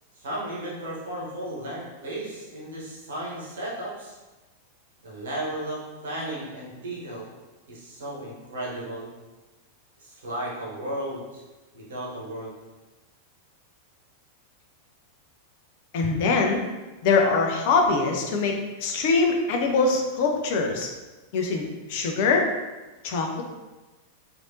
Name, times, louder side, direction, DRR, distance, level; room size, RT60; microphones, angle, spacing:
voice 1, 0.1-4.1 5.0-7.3 7.7-9.1 10.0-11.4 11.7-12.5, right 1 dB, 65° right, -5 dB, 0.9 m, -34 dB
voice 2, 15.9-16.6 17.0-20.9 21.3-22.5 23.0-23.4, left 4 dB, 50° left, 2 dB, 0.5 m, -23 dB
3.2 x 2.5 x 2.6 m, 1.1 s
figure-of-eight pair, 90°, 0 cm